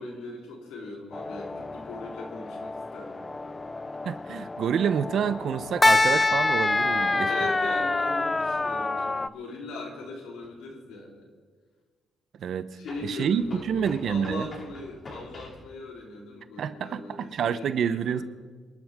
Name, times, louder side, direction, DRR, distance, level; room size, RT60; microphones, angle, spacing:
voice 1, 0.0-3.7 7.2-11.3 12.8-18.2, left 2 dB, 90° left, -1 dB, 3.8 m, -39 dB
sound 1, 1.1-9.3, left 3 dB, 20° left, 0.4 m, -27 dB
voice 2, 4.0-7.3 12.4-12.7 13.0-14.5 16.6-18.2, right 7 dB, 65° right, 13 dB, 0.8 m, -28 dB
sound 2, 10.4-10.5 12.8-15.7, left 1 dB, 40° left, 6.1 m, -45 dB
26.5 x 12.5 x 3.7 m, 1.5 s
cardioid pair, 90°, 0 cm